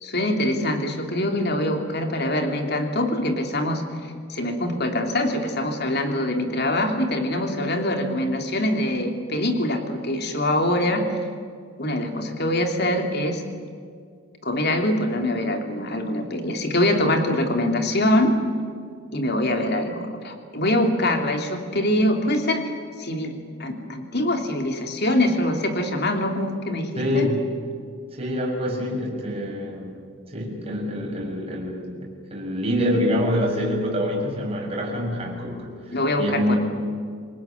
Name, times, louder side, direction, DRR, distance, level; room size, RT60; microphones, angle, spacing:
voice 1, 0.0-11.1 11.8-13.4 14.4-18.3 19.1-22.7 23.0-23.3 23.6-27.3 35.9-36.6, left 1 dB, 50° left, 4 dB, 3.1 m, -24 dB
voice 2, 27.0-27.4 28.1-36.6, equal, 25° right, -1 dB, 6.4 m, -26 dB
27.5 x 19.5 x 9.6 m, 2.2 s
head